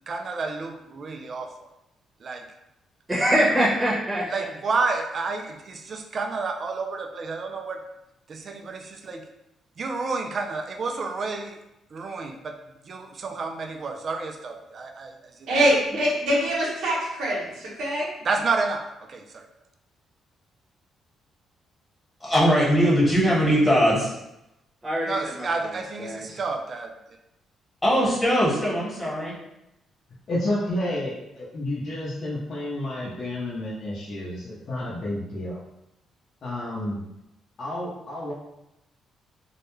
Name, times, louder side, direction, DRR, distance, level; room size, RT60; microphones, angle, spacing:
voice 1, 0.1-1.5 2.2-2.4 4.3-7.8 8.3-9.2 9.8-11.5 11.9-12.5 12.8-15.1 18.2-19.4 25.0-26.9, right 4 dB, 45° right, 4 dB, 0.3 m, -30 dB
voice 2, 3.1-4.2 24.8-25.7 26.0-26.4, equal, 15° right, -7 dB, 0.8 m, -24 dB
voice 3, 15.5-17.4 17.8-18.1, right 1 dB, 85° right, -4 dB, 0.8 m, -23 dB
voice 4, 22.2-24.1 27.8-29.4, equal, 20° left, -7 dB, 1.2 m, -20 dB
voice 5, 30.3-35.6 36.4-37.0 37.6-38.3, left 1 dB, 55° left, -7 dB, 0.7 m, -30 dB
2.3 x 2.1 x 3.0 m, 0.88 s
cardioid pair, 90°, 0 cm